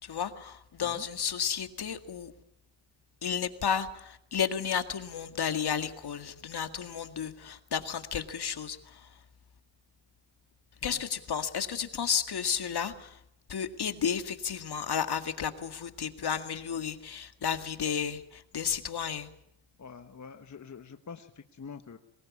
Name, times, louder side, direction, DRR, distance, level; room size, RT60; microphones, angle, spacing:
voice 1, 0.0-2.3 3.2-9.0 10.8-13.1 13.5-19.3, left 7 dB, 50° left, 8 dB, 2.1 m, -32 dB
voice 2, 19.8-22.0, left 6 dB, 35° left, 7 dB, 1.3 m, -46 dB
23.0 x 20.0 x 8.4 m, 0.77 s
cardioid pair, 80°, 48 cm